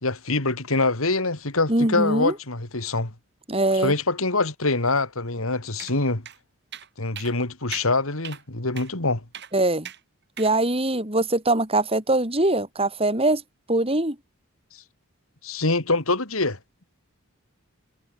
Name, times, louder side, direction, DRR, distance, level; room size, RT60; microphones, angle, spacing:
voice 1, 0.0-3.1 3.7-6.2 7.0-9.2 15.4-16.6, left 3 dB, 75° left, 2.9 m, -24 dB
voice 2, 1.7-2.3 3.5-3.9 9.5-9.9 10.4-13.4 13.7-14.2, right 2 dB, 25° right, 4.6 m, -22 dB
sound 1, 5.8-6.0 6.3-6.4 6.7-6.9 7.2-7.3 7.7-7.9 8.2-8.4 8.8-8.9 9.3-9.5 9.8-10.0 10.4-10.5, right 10 dB, 50° right, 7.9 m, -38 dB
head